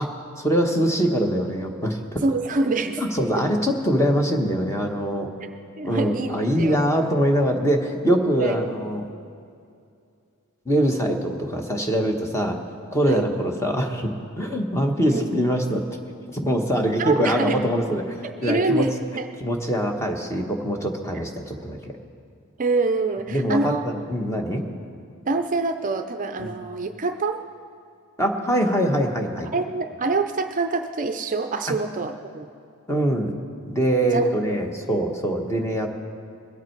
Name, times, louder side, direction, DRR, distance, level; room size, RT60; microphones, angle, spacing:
voice 1, 0.0-2.2 3.0-5.3 5.8-9.0 10.6-12.6 12.9-14.1 14.4-15.8 16.3-18.0 18.4-18.8 19.4-21.9 23.3-24.6 26.4-26.5 28.2-29.5 32.9-33.3 33.7-35.9, equal, 15° left, 2 dB, 1.1 m, -23 dB
voice 2, 2.2-3.0 5.8-6.8 8.4-8.6 13.1-13.3 15.1-15.2 17.0-17.6 18.2-19.3 22.6-23.8 25.3-27.4 29.5-32.5 34.1-34.3, right 3 dB, 35° right, 7 dB, 0.5 m, -25 dB
21.5 x 8.3 x 4.5 m, 2.4 s
head